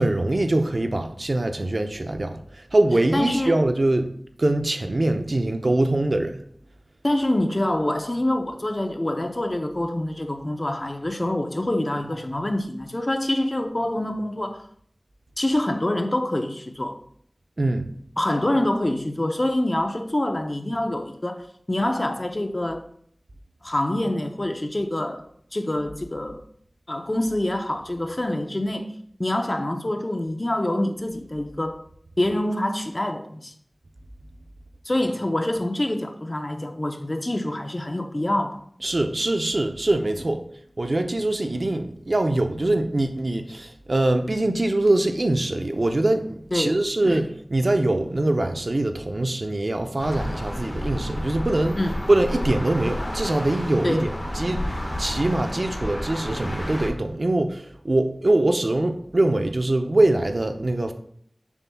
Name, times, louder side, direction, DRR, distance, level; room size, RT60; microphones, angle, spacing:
voice 1, 0.0-4.1 4.4-6.4 17.6-17.9 38.8-40.4 40.8-51.8 52.1-54.1 54.3-60.9, right 2 dB, 65° right, 0.7 m, -23 dB
voice 2, 3.1-3.5 7.0-14.6 15.4-17.0 18.2-22.9 23.6-25.2 25.5-26.4 26.9-28.9 29.2-31.8 32.2-33.5 34.8-38.6 46.5-47.2 51.8-52.0 53.8-54.1, left 1 dB, 40° left, 0.8 m, -26 dB
sound 1, 50.0-56.9, equal, 25° left, 1.5 m, -31 dB
7.2 x 7.0 x 2.3 m
wide cardioid pair, 55°, 0 cm